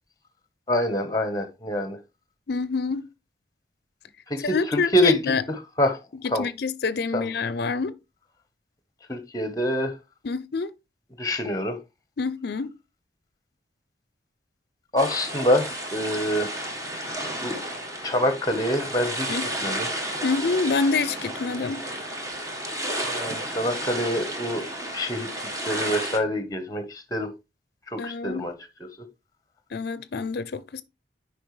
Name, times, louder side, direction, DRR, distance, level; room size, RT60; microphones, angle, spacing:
voice 1, 0.7-2.0 4.3-6.0 6.3-6.4 7.1-7.3 9.1-9.9 11.2-11.8 14.9-16.5 17.4-17.6 18.0-19.9 23.1-24.7 24.9-25.3 25.6-27.3 27.9-28.5, left 1 dB, 20° left, 1.0 m, -25 dB
voice 2, 2.5-3.1 4.4-5.4 6.2-8.0 10.2-10.7 12.2-12.7 19.3-19.5 20.2-21.8 28.0-28.5 29.7-30.8, left 4 dB, 60° left, 0.5 m, -27 dB
sound 1, 15.0-26.2, right 1 dB, 20° right, 1.4 m, -32 dB
8.7 x 5.0 x 3.2 m
head